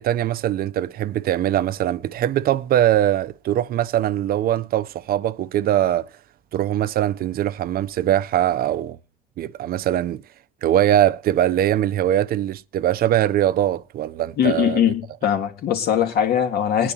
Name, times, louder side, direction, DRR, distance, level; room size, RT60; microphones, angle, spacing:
voice 1, 0.0-6.1 6.5-9.0 9.4-10.2 10.6-14.8, right 12 dB, 60° right, 0.8 m, -21 dB
voice 2, 14.4-16.9, left 9 dB, 70° left, 3.2 m, -21 dB
22.0 x 10.0 x 2.9 m
cardioid pair, 110°, 17 cm